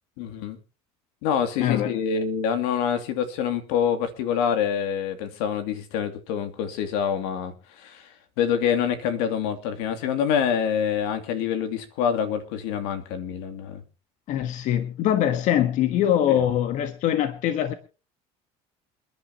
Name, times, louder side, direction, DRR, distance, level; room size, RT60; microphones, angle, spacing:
voice 1, 0.2-0.6 1.2-8.1 8.4-13.8 16.3-16.4, left 8 dB, 85° left, 2.7 m, -26 dB
voice 2, 1.6-1.9 14.3-17.7, left 11 dB, 60° left, 1.5 m, -23 dB
28.0 x 10.5 x 3.0 m
supercardioid pair, 110°, 14 cm